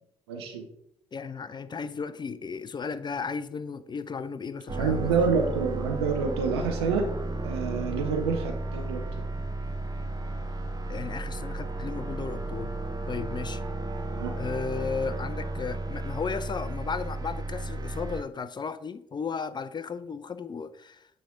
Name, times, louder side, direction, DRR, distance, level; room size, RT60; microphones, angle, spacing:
voice 1, 0.3-0.7 4.8-7.1 7.4-9.3 14.2-14.3, right 5 dB, 85° right, 0.6 m, -28 dB
voice 2, 1.1-5.2 10.9-12.7 13.1-13.6 14.4-21.1, left 5 dB, 35° left, 0.5 m, -35 dB
sound 1, 4.7-18.2, right 2 dB, 30° right, 0.9 m, -33 dB
8.4 x 3.4 x 3.7 m
hypercardioid pair, 40°, 13 cm